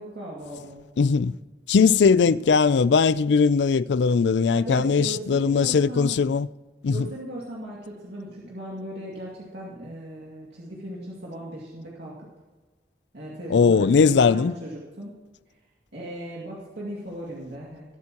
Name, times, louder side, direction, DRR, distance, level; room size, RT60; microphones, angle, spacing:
voice 1, 0.0-0.9 4.5-6.2 6.9-12.1 13.1-15.1 15.9-17.8, right 1 dB, 80° right, 2.3 m, -37 dB
voice 2, 1.0-1.4 1.7-6.5 6.8-7.1 13.5-14.6, left 5 dB, 90° left, 0.4 m, -19 dB
21.0 x 8.3 x 3.0 m
head